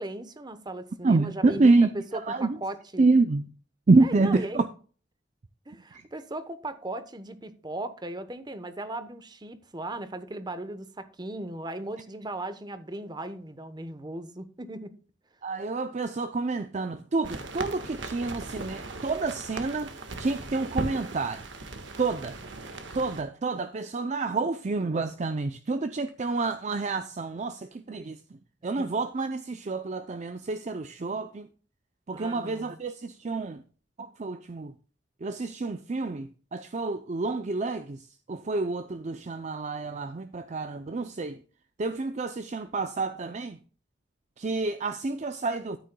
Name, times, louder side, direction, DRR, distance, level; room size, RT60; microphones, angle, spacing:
voice 1, 0.0-3.1 4.0-4.6 5.7-14.9 28.8-28.9 32.1-32.9, right 1 dB, 25° right, 0.9 m, -37 dB
voice 2, 1.0-1.9 2.3-2.6 3.0-3.5 3.9-4.7 15.4-19.9 20.2-21.4 22.0-22.3 22.9-28.2 28.6-31.5 32.1-33.6 34.0-34.7 35.2-38.0 38.3-41.4 41.8-43.6 44.4-45.8, right 3 dB, 40° right, 0.5 m, -27 dB
sound 1, 17.2-23.2, right 2 dB, 80° right, 1.5 m, -38 dB
13.5 x 9.3 x 2.2 m
head